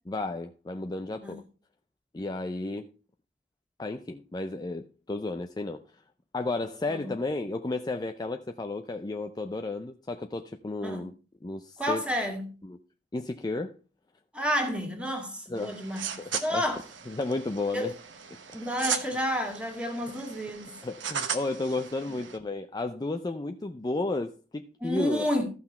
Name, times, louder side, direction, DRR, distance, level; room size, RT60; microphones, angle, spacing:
voice 1, 0.1-1.4 2.1-2.9 3.8-5.8 6.3-11.1 11.4-12.0 12.6-12.8 13.1-13.8 15.5-15.8 16.3-16.7 17.1-17.9 20.8-25.3, left 2 dB, 20° left, 0.4 m, -33 dB
voice 2, 11.8-12.5 14.3-16.8 17.7-17.9 18.5-20.8 22.1-22.2 24.8-25.5, equal, 5° right, 2.1 m, -30 dB
sound 1, 15.6-22.4, right 7 dB, 75° right, 1.1 m, -37 dB
14.0 x 5.9 x 4.3 m
head